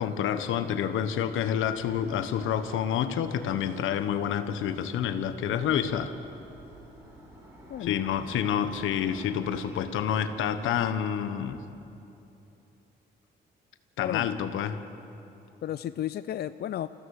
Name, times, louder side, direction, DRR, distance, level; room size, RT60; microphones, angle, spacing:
voice 1, 0.0-6.1 7.8-11.6 14.0-14.8, left 9 dB, 85° left, 10 dB, 1.2 m, -28 dB
sound 1, 1.2-10.7, right 1 dB, 15° right, 6.4 m, -51 dB
voice 2, 7.7-8.1 14.0-14.3 15.6-16.9, left 11 dB, 55° left, 13 dB, 0.5 m, -33 dB
26.5 x 15.5 x 6.5 m, 2.9 s
cardioid pair, 90°, 20 cm